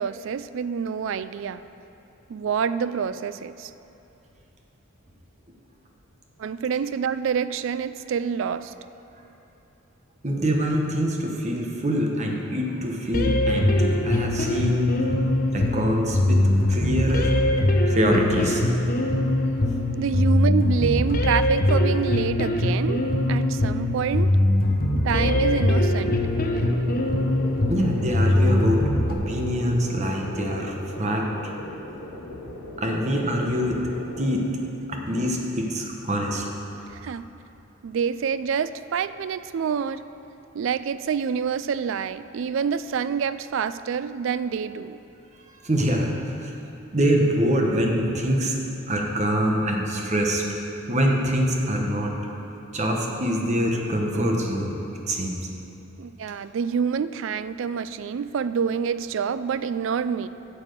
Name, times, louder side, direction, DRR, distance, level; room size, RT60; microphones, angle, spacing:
voice 1, 0.0-1.6 2.3-3.7 6.4-8.7 14.8-14.9 17.4-17.5 20.0-23.0 23.3-24.4 24.9-26.2 37.0-37.2 37.8-40.0 40.5-45.0 56.0-60.3, right 6 dB, 60° right, 14 dB, 0.3 m, -27 dB
voice 2, 10.2-15.0 15.5-16.4 16.7-17.3 17.9-18.6 27.7-31.3 32.8-33.8 34.2-34.4 34.9-36.4 45.5-46.5 46.9-48.6 48.9-50.4 50.9-52.1 52.7-54.8 55.1-55.4, equal, 35° right, 1 dB, 1.1 m, -24 dB
sound 1, 13.1-29.1, left 1 dB, 40° left, 0.8 m, -22 dB
sound 2, 25.1-34.4, left 1 dB, 80° left, 1.5 m, -37 dB
9.1 x 7.2 x 6.6 m, 2.9 s
head